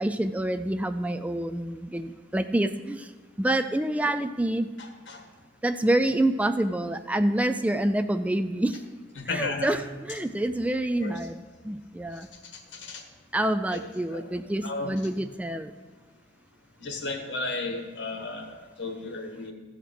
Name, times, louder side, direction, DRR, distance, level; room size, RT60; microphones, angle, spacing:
voice 1, 0.0-3.1 3.4-4.7 5.6-8.8 9.3-11.4 11.6-12.3 13.3-15.7, right 1 dB, 10° right, 10 dB, 0.3 m, -27 dB
voice 2, 4.8-5.2 9.1-9.8 11.0-11.2 12.5-13.0 13.7-14.3 14.6-15.0 16.8-19.5, left 3 dB, 80° left, 4 dB, 1.6 m, -34 dB
14.5 x 5.0 x 6.3 m, 1.3 s
head